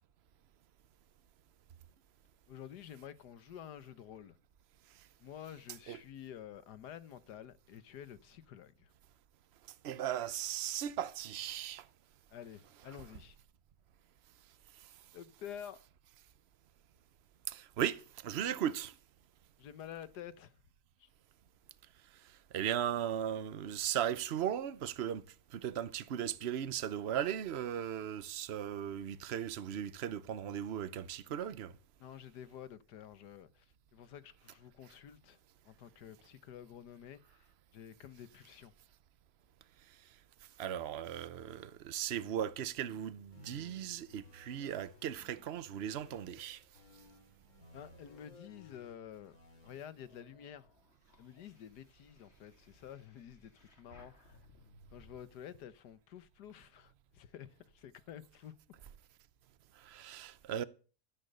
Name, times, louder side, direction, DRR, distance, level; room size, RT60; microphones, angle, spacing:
voice 1, 2.5-4.4 5.2-8.9 12.3-13.4 15.1-15.8 19.6-20.5 21.0-21.1 32.0-35.4 35.6-38.7 47.7-49.4 49.6-50.7 51.2-54.4 54.9-58.6, left 9 dB, 90° left, 1.6 m, -50 dB
voice 2, 9.8-11.9 17.5-18.9 22.2-25.2 25.5-31.7 40.6-46.6 59.8-60.6, right 10 dB, 50° right, 0.9 m, -37 dB
sound 1, 43.3-46.3 46.7-49.7, left 3 dB, 60° left, 3.6 m, -59 dB
sound 2, 44.8-49.0 49.6-55.2, equal, 40° left, 3.1 m, -64 dB
13.5 x 10.5 x 6.8 m
omnidirectional pair, 1.7 m